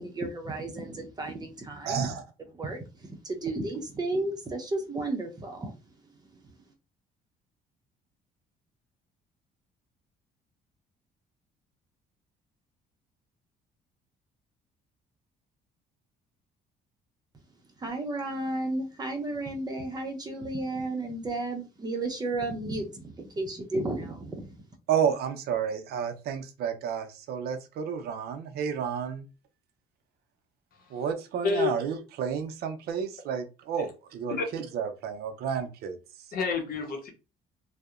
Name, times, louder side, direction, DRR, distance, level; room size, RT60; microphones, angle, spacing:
voice 1, 0.0-2.1 2.5-5.8 17.8-24.7, right 2 dB, 25° right, 0.6 m, -33 dB
voice 2, 1.9-2.2 24.9-29.3 30.9-36.0, right 7 dB, 70° right, 0.5 m, -31 dB
voice 3, 30.7-31.0 31.4-31.7 33.8-33.9 34.3-34.5 36.3-37.1, left 5 dB, 60° left, 0.8 m, -29 dB
2.7 x 2.0 x 2.3 m
cardioid pair, 110°, 17 cm